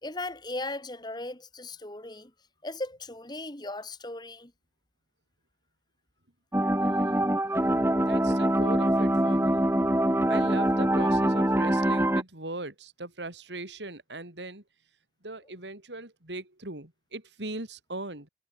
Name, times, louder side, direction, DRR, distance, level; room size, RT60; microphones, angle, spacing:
voice 1, 0.0-2.3 2.6-4.5, left 2 dB, 25° left, 3.1 m, -37 dB
sound 1, 6.5-12.2, right 1 dB, 15° right, 2.1 m, -24 dB
voice 2, 6.8-7.2 8.1-9.7 10.3-14.6 15.2-18.3, right 2 dB, 85° right, 4.6 m, -39 dB
head